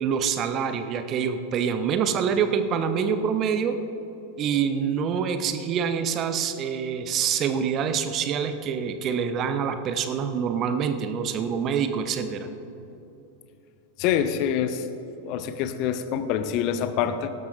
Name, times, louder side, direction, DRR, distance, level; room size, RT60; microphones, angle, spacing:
voice 1, 0.0-3.8 4.4-12.5, right 7 dB, 35° right, 9 dB, 0.8 m, -26 dB
voice 2, 14.0-14.8 15.2-17.3, left 9 dB, 40° left, 11 dB, 0.6 m, -26 dB
17.5 x 13.0 x 2.6 m, 2.9 s
figure-of-eight pair, 90°, 0 cm